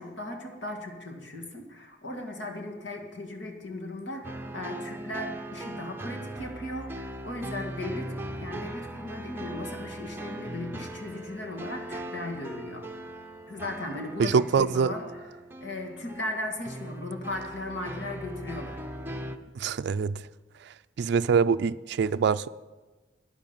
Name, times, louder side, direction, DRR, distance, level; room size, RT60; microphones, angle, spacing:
voice 1, 0.0-12.9 13.5-15.0 15.6-18.8, left 2 dB, 70° left, 3 dB, 2.2 m, -37 dB
sound 1, 4.2-19.4, right 1 dB, 10° right, 0.8 m, -39 dB
voice 2, 14.2-14.9 19.6-20.2 21.0-22.5, right 6 dB, 60° right, 11 dB, 0.4 m, -24 dB
12.0 x 10.0 x 7.5 m, 1.2 s
head